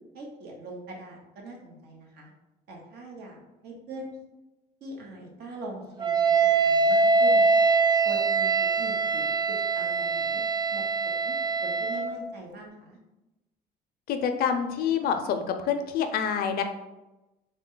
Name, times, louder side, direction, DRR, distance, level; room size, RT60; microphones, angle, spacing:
voice 1, 0.1-2.3 2.7-3.4 3.6-4.1 4.8-6.3 6.6-7.6 8.0-8.5 8.8-9.3 9.7-10.4 10.7-11.3 11.6-13.0, right 2 dB, 70° right, 0 dB, 1.0 m, -42 dB
Wind instrument woodwind instrument, 6.0-12.2, right 4 dB, 25° right, 0.3 m, -23 dB
voice 2, 14.1-16.6, left 7 dB, 65° left, 7 dB, 0.5 m, -27 dB
3.8 x 2.1 x 3.7 m, 1.0 s
cardioid pair, 110°, 17 cm